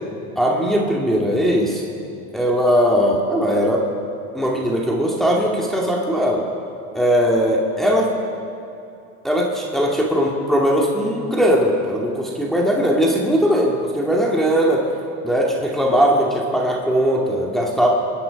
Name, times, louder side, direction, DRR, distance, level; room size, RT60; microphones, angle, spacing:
voice 1, 0.4-1.8 2.3-3.9 4.3-6.4 6.9-8.1 9.2-14.8 15.2-17.9, equal, ahead, -3 dB, 2.4 m, -19 dB
23.5 x 10.0 x 5.3 m, 2.7 s
supercardioid pair, 95°, 40 cm